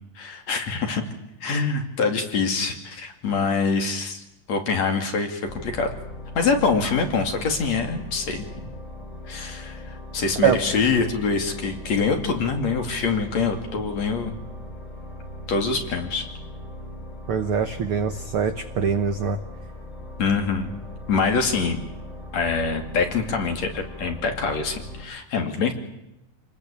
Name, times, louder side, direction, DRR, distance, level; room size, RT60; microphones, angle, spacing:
voice 1, 0.2-1.0 1.4-4.2 4.5-5.9 6.4-8.7 9.3-14.3 15.5-16.2 20.2-20.7 21.1-21.8 22.3-25.7, left 4 dB, 50° left, 5 dB, 3.6 m, -25 dB
sound 1, 5.5-25.1, left 1 dB, 15° left, 2.8 m, -39 dB
voice 2, 17.3-19.4, right 7 dB, 70° right, 8 dB, 1.3 m, -23 dB
28.0 x 20.0 x 8.4 m, 0.87 s
omnidirectional pair, 4.0 m